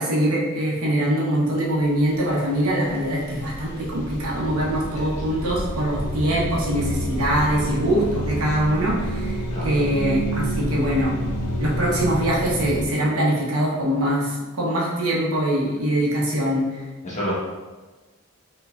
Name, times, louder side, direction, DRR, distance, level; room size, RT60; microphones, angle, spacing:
voice 1, 0.0-9.4 9.6-11.1 11.6-16.8, right 1 dB, 75° right, -4 dB, 1.1 m, -23 dB
sound 1, 1.8-1.9 2.2-12.9, equal, 85° left, 0.6 m, -29 dB
voice 2, 4.9-5.2 9.5-9.8 17.0-17.3, equal, 30° left, -7 dB, 1.2 m, -30 dB
5.4 x 3.1 x 2.5 m, 1.2 s
head